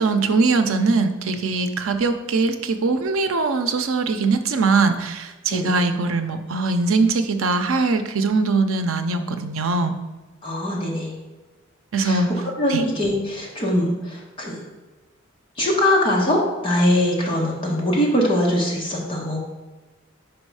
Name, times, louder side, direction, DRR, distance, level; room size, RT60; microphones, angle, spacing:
voice 1, 0.0-9.9 11.9-12.3 12.7-12.8, right 3 dB, 85° right, 8 dB, 0.6 m, -21 dB
voice 2, 10.4-11.1 12.0-12.2 12.6-14.7 15.6-19.4, left 1 dB, 25° left, -4 dB, 1.4 m, -22 dB
5.3 x 4.8 x 4.8 m, 1.2 s
head